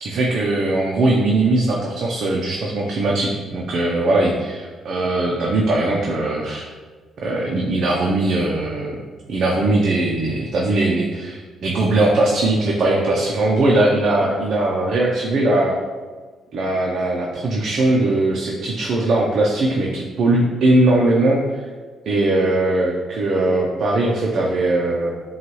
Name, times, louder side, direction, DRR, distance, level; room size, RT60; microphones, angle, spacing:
voice 1, 0.0-6.7 7.2-9.0 9.3-15.8 16.5-21.6 22.1-25.1, right 2 dB, 60° right, -2 dB, 0.6 m, -20 dB
5.7 x 2.4 x 3.0 m, 1.4 s
cardioid pair, 90°, 0 cm